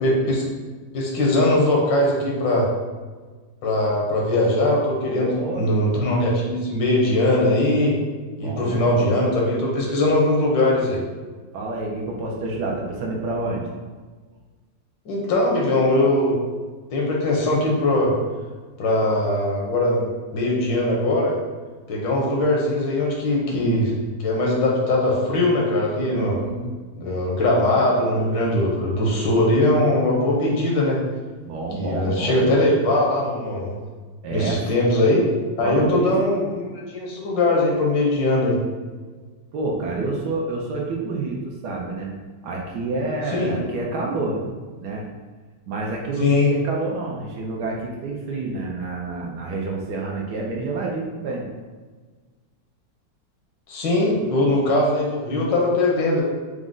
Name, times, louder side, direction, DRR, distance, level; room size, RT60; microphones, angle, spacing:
voice 1, 0.0-0.4 0.9-2.7 3.6-8.0 8.4-11.0 15.0-16.4 16.9-18.1 18.8-21.4 21.9-23.9 24.2-26.4 26.9-31.0 31.7-33.7 34.3-35.2 35.6-38.6 43.3-43.6 46.2-46.5 53.7-56.2, left 1 dB, 80° left, -2 dB, 1.6 m, -21 dB
voice 2, 5.1-5.6 8.4-9.1 11.5-13.6 26.1-26.7 31.4-32.4 34.2-34.7 35.6-36.1 39.5-42.1 42.4-44.4 44.8-45.0 45.7-46.3 46.5-51.5, right 3 dB, 70° right, -1 dB, 1.1 m, -28 dB
4.9 x 2.1 x 3.7 m, 1.4 s
omnidirectional pair, 2.0 m